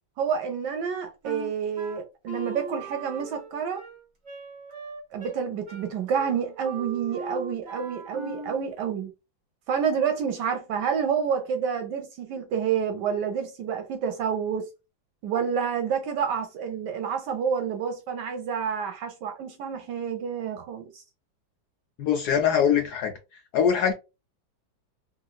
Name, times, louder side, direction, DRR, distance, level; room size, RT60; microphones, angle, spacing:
voice 1, 0.2-3.8 5.1-9.1 9.7-14.7 15.2-21.0, right 7 dB, 75° right, 1.1 m, -28 dB
Wind instrument woodwind instrument, 1.2-8.7, right 3 dB, 30° right, 0.9 m, -39 dB
voice 2, 22.0-23.1 23.5-23.9, left 8 dB, 70° left, 1.0 m, -22 dB
3.0 x 2.7 x 2.3 m
omnidirectional pair, 2.1 m